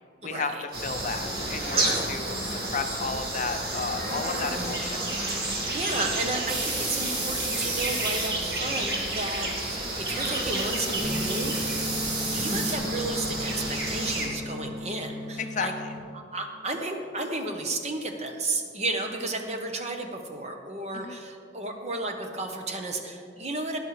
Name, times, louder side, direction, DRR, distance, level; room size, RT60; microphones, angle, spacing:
voice 1, 0.2-0.7 1.7-2.2 5.4-12.0 12.3-15.7 16.1-23.8, right 2 dB, 35° right, 4 dB, 0.9 m, -33 dB
sound 1, 0.7-14.3, right 1 dB, 55° right, 1.7 m, -30 dB
voice 2, 0.8-5.0 15.4-15.9 21.0-21.2, left 4 dB, 40° left, 7 dB, 0.5 m, -33 dB
sound 2, 6.5-8.3 10.1-12.7, right 2 dB, 85° right, 2.8 m, -33 dB
sound 3, 11.0-16.0, left 1 dB, 5° right, 2.9 m, -36 dB
12.5 x 11.0 x 3.3 m, 2.3 s
head